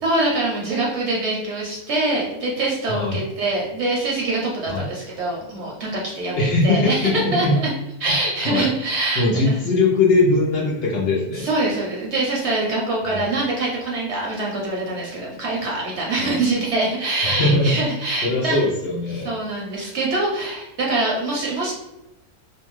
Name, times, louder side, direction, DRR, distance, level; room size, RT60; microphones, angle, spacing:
voice 1, 0.0-7.5 8.0-9.6 11.3-18.6 19.1-21.7, right 2 dB, 60° right, -3 dB, 0.8 m, -24 dB
voice 2, 6.4-7.6 8.4-8.7 9.2-11.5 13.1-13.3 16.2-16.4 17.2-17.8 18.2-19.3, left 2 dB, 80° left, -4 dB, 0.5 m, -20 dB
2.6 x 2.2 x 3.0 m, 0.95 s
omnidirectional pair, 1.6 m